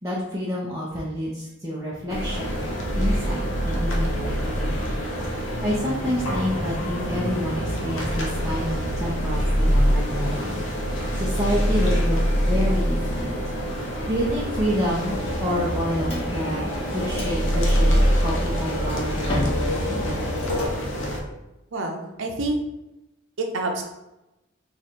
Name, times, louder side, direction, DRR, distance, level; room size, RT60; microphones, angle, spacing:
voice 1, 0.0-2.6 2.9-4.9 5.6-10.6 11.2-13.4 14.1-20.0, equal, 15° right, -7 dB, 0.6 m, -28 dB
sound 1, 2.1-21.2, equal, 85° left, 0.7 m, -25 dB
sound 2, 15.1-20.7, left 1 dB, 30° left, 0.9 m, -29 dB
voice 2, 21.7-22.6 23.4-23.8, right 2 dB, 80° right, 2 dB, 0.6 m, -27 dB
3.1 x 2.5 x 4.3 m, 0.97 s
head